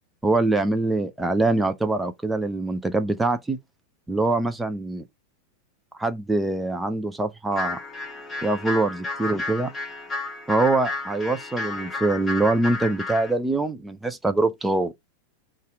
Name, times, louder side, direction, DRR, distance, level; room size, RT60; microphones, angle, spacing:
voice 1, 0.2-3.6 4.1-5.0 6.0-7.8 8.4-9.7 10.5-14.9, right 2 dB, 10° right, 0.5 m, -24 dB
sound 1, 7.5-13.3, left 3 dB, 20° left, 1.0 m, -32 dB
4.0 x 2.5 x 4.8 m
figure-of-eight pair, 90°, 0 cm